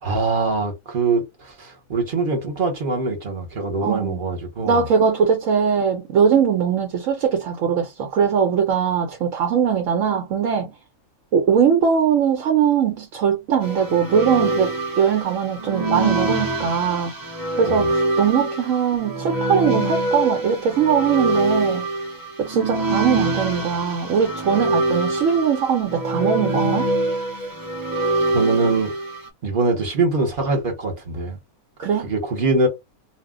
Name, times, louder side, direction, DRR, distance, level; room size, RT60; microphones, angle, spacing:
voice 1, 0.0-4.8 17.7-17.9 28.3-28.9 29.4-31.4 32.0-32.7, right 3 dB, 40° right, 1.0 m, -23 dB
voice 2, 3.8-4.2 4.7-10.7 11.3-17.1 17.6-21.8 22.4-26.9 31.8-32.1, right 7 dB, 70° right, 1.0 m, -20 dB
sound 1, 13.6-29.3, right 2 dB, 25° right, 0.5 m, -24 dB
2.4 x 2.1 x 3.6 m
omnidirectional pair, 1.5 m